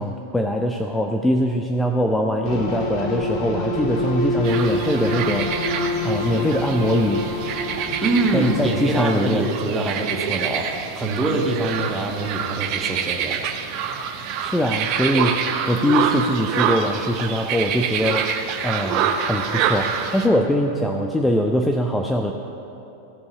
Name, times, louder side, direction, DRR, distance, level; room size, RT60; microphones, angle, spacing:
voice 1, 0.0-7.2 8.3-9.5 14.4-18.3 18.6-22.3, equal, 5° left, 2 dB, 0.7 m, -22 dB
sound 1, 2.4-9.0, left 1 dB, 40° left, 1.6 m, -26 dB
sound 2, 4.4-20.3, right 7 dB, 40° right, 0.8 m, -26 dB
voice 2, 8.0-13.5, right 2 dB, 15° right, 2 dB, 1.4 m, -24 dB
15.5 x 5.6 x 7.7 m, 2.9 s
figure-of-eight pair, 90°, 0 cm